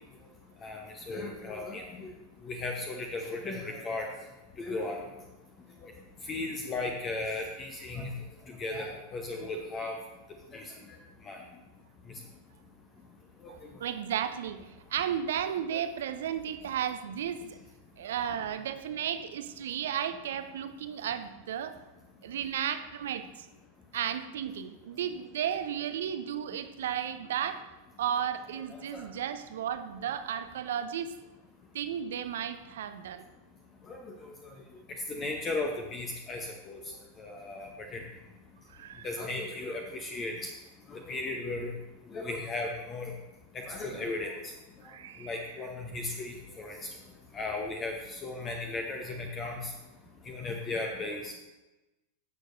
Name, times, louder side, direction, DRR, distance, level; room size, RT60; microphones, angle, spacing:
voice 1, 1.1-2.1 2.5-4.1 4.6-5.0 5.8-5.9 6.3-8.1 8.5-9.9 10.5-10.6 11.3-11.4 28.9-29.0 33.9-34.0 35.1-36.8 37.2-38.0 39.0-40.5 40.9-41.7 42.1-43.1 43.7-44.3 45.2-46.8 47.3-49.6 50.3-51.3, left 2 dB, 25° left, 2 dB, 0.9 m, -36 dB
voice 2, 13.5-17.6 18.0-21.8 22.2-23.3 23.9-27.7 28.0-31.1 31.7-33.2 38.7-39.1 44.8-45.4, right 9 dB, 60° right, 10 dB, 0.6 m, -34 dB
15.5 x 6.4 x 2.6 m, 1.1 s
figure-of-eight pair, 90°, 0 cm